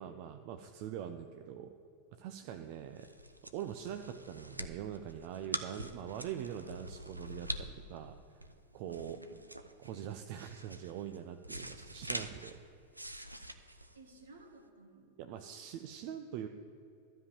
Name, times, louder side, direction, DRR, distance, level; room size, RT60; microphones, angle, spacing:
voice 1, 0.0-1.7 2.1-3.1 3.5-8.1 8.7-9.2 9.8-12.5 15.2-16.5, right 10 dB, 45° right, 7 dB, 0.6 m, -43 dB
sound 1, 2.6-14.6, right 1 dB, 85° right, 0.6 m, -45 dB
voice 2, 13.9-15.7, right 2 dB, 70° right, 3 dB, 1.8 m, -58 dB
13.0 x 5.6 x 8.8 m, 2.7 s
figure-of-eight pair, 90°, 0 cm